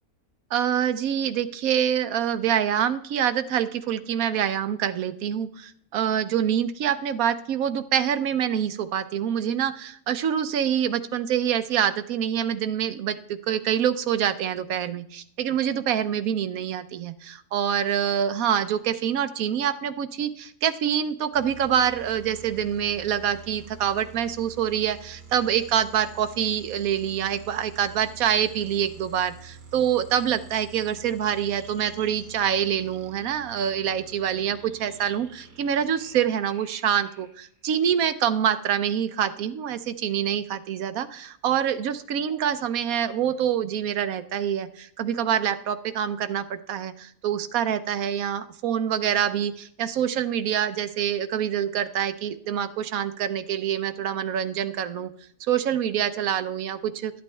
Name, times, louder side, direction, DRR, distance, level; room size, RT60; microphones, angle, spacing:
voice 1, 0.5-55.1 55.5-57.2, right 9 dB, 70° right, 12 dB, 1.1 m, -26 dB
sound 1, 21.3-37.8, right 4 dB, 90° right, 2.2 m, -48 dB
12.0 x 8.2 x 3.2 m, 0.67 s
omnidirectional pair, 1.6 m